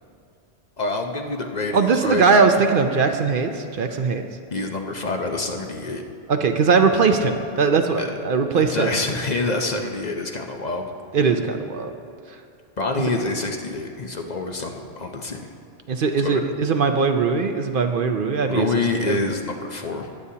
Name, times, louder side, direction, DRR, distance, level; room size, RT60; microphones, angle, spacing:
voice 1, 0.8-2.2 4.5-6.0 7.9-8.1 8.5-10.9 12.8-15.5 16.2-16.4 18.4-20.1, left 3 dB, 45° left, 3 dB, 0.7 m, -26 dB
voice 2, 1.7-4.3 6.3-8.9 11.1-11.9 13.0-13.1 15.9-18.7 19.0-19.2, right 5 dB, 60° right, 6 dB, 0.7 m, -20 dB
21.0 x 8.4 x 2.8 m, 2.5 s
omnidirectional pair, 1.1 m